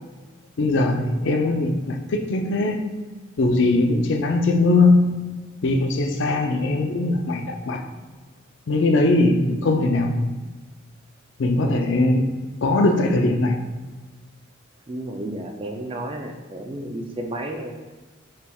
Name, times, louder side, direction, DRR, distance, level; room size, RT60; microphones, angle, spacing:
voice 1, 0.6-2.8 3.4-5.3 5.6-7.8 8.7-10.3 11.4-12.3 12.6-13.6, left 2 dB, 65° left, 4 dB, 0.4 m, -20 dB
voice 2, 11.5-12.0 14.9-17.8, right 1 dB, 25° right, 3 dB, 0.3 m, -32 dB
5.5 x 3.3 x 2.3 m, 1.3 s
head